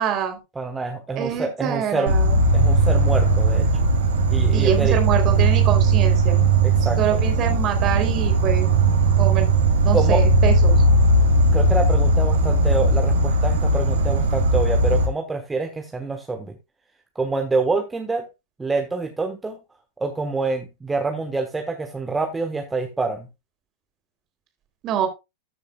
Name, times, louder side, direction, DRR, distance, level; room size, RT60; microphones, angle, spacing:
voice 1, 0.0-0.4 1.1-2.4 4.5-6.4 7.0-8.7 9.2-9.5 9.8-10.7 24.8-25.1, right 8 dB, 35° right, 3.3 m, -25 dB
voice 2, 0.6-2.1 2.5-3.7 4.3-5.0 6.6-7.0 9.9-10.2 11.5-16.5 17.1-18.2 18.6-19.6 20.0-23.3, right 3 dB, 10° right, 1.3 m, -26 dB
Insect, 2.1-15.1, right 2 dB, 65° right, 2.4 m, -18 dB
14.0 x 6.7 x 2.3 m
figure-of-eight pair, 90°, 0 cm